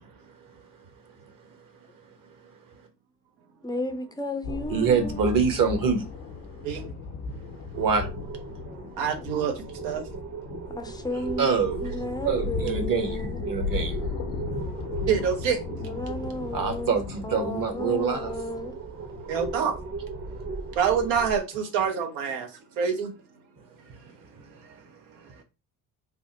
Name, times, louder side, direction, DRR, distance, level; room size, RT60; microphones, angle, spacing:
voice 1, 3.6-5.2 6.4-6.9 7.2-7.3 10.8-11.5 11.8-13.4 15.7-16.9 17.2-18.7, left 1 dB, 10° left, 0.4 m, -34 dB
sound 1, 4.4-20.6, left 5 dB, 90° left, 0.7 m, -37 dB
voice 2, 4.7-6.1 7.3-7.4 7.7-8.1 11.4-11.8 12.2-14.2 16.5-18.3 20.3-20.4, right 5 dB, 50° right, 1.0 m, -25 dB
voice 3, 6.6-7.0 9.0-10.1 14.8-15.9 19.2-19.8 20.7-23.1 24.5-24.8 25.2-25.3, right 7 dB, 85° right, 0.8 m, -27 dB
sound 2, 7.7-21.4, right 3 dB, 30° right, 0.7 m, -38 dB
3.5 x 2.1 x 2.6 m
supercardioid pair, 65°, 44 cm